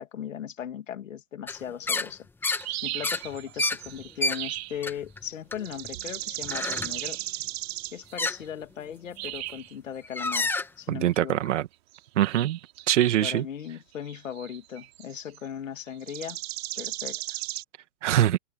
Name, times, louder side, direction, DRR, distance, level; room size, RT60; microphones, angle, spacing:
voice 1, 0.0-2.5 2.8-7.2 7.9-11.4 13.2-16.4 16.8-17.4, left 9 dB, 90° left, 2.5 m, -38 dB
sound 1, 1.5-1.6 1.9-2.1 2.4-2.7 3.0-4.4 4.8-5.2 5.5-6.0 6.4-7.0 8.2-8.4 9.3-9.5 10.0-10.7, left 2 dB, 5° left, 1.4 m, -29 dB
sound 2, 2.5-4.8 5.6-8.2 9.2-9.7 10.2-10.3 11.9-13.4 14.1-15.5 16.0-17.6, right 17 dB, 55° right, 3.4 m, -36 dB
voice 2, 10.9-11.7 12.2-12.6 12.9-13.4 18.0-18.4, right 12 dB, 70° right, 1.9 m, -23 dB
open air
hypercardioid pair, 140°, 37 cm